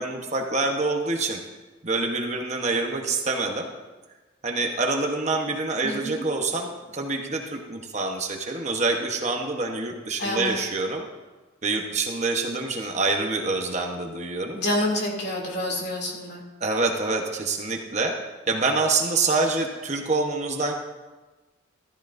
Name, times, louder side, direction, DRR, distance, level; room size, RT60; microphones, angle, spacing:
voice 1, 0.0-1.4 1.8-3.7 4.4-11.0 11.6-14.6 16.6-18.1 18.5-20.7, right 3 dB, 35° right, 2 dB, 1.0 m, -26 dB
voice 2, 5.8-6.2 10.2-10.6 14.5-16.4, left 1 dB, 55° left, -1 dB, 2.6 m, -28 dB
14.0 x 13.5 x 2.6 m, 1.2 s
head